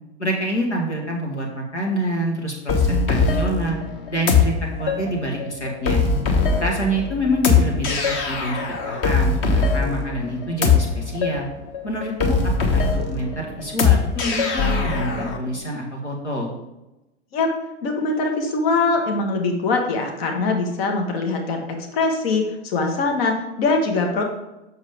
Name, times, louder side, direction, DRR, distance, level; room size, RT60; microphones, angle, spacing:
voice 1, 0.2-3.8 4.1-6.0 6.6-11.5 11.8-16.5, equal, 90° left, 0 dB, 1.5 m, -26 dB
sound 1, 2.7-15.4, left 5 dB, 35° left, 1.2 m, -21 dB
voice 2, 17.8-24.2, left 3 dB, 60° left, 2 dB, 1.4 m, -22 dB
7.1 x 6.4 x 3.5 m, 0.97 s
figure-of-eight pair, 90°, 34 cm